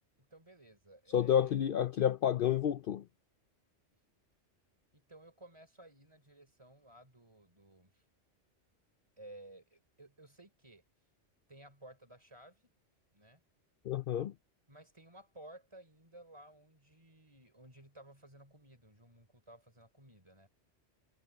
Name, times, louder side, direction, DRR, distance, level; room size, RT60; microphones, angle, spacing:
voice 1, 0.3-1.7 4.9-8.0 9.2-10.8 11.5-12.7 13.1-13.4 14.7-20.5, right 1 dB, 25° right, 3.7 m, -56 dB
voice 2, 1.1-3.0 13.9-14.3, left 9 dB, 60° left, 0.7 m, -30 dB
omnidirectional pair, 1.2 m